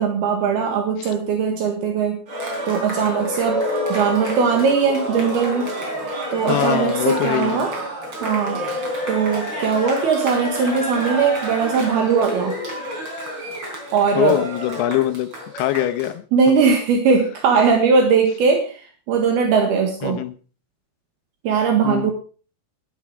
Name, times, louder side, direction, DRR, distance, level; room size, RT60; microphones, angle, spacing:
voice 1, 0.0-2.2 2.7-3.6 3.9-5.7 6.3-7.7 8.2-8.6 9.1-12.6 13.9-14.4 16.3-20.2 21.4-22.1, right 5 dB, 75° right, 4 dB, 3.6 m, -19 dB
Cheering, 2.3-16.1, equal, 30° right, 4.2 m, -28 dB
voice 2, 6.5-7.6 14.1-15.3 15.5-16.6 20.0-20.3 21.8-22.1, left 14 dB, 80° left, 9 dB, 2.9 m, -23 dB
12.5 x 12.0 x 4.9 m, 0.39 s
omnidirectional pair, 4.7 m